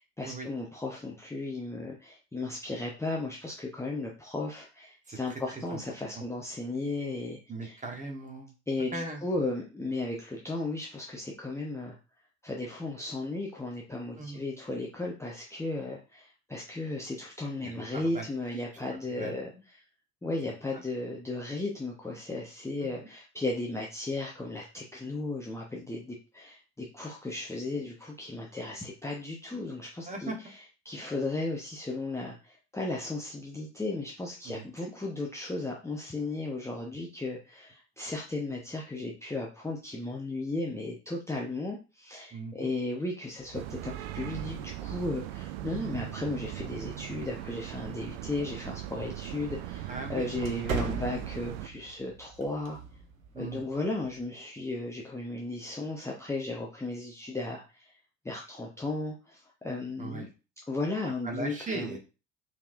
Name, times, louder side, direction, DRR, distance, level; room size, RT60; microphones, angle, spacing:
voice 1, 0.0-7.8 8.7-12.0 12.4-19.8 20.2-30.3 30.8-52.8 53.4-58.0 58.2-60.3 60.7-62.0, left 2 dB, 5° left, -2 dB, 0.8 m, -35 dB
voice 2, 5.1-5.8 6.1-6.2 7.5-8.5 8.9-9.2 14.2-14.4 17.6-18.3 18.5-18.6 19.2-19.4 22.8-22.9 30.0-30.4 34.4-34.9 42.3-42.7 49.9-51.0 53.3-53.6 60.0-60.3 61.2-62.0, right 3 dB, 20° right, 2 dB, 1.3 m, -39 dB
sound 1, 43.5-51.7, right 14 dB, 50° right, 0.4 m, -39 dB
sound 2, 46.3-54.3, right 4 dB, 80° right, 0.7 m, -42 dB
4.4 x 3.5 x 2.5 m, 0.32 s
figure-of-eight pair, 60°, 41 cm